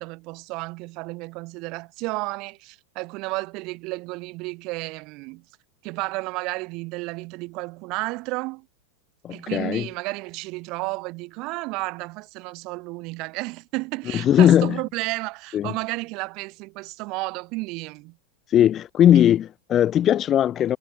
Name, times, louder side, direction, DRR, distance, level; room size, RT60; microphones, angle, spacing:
voice 1, 0.0-5.4 5.8-8.7 9.3-18.2, right 25 dB, 40° right, 5.8 m, -32 dB
voice 2, 9.2-9.9 14.1-14.8 15.5-15.7 18.5-20.8, left 11 dB, 30° left, 2.5 m, -19 dB
figure-of-eight pair, 90°, 0 cm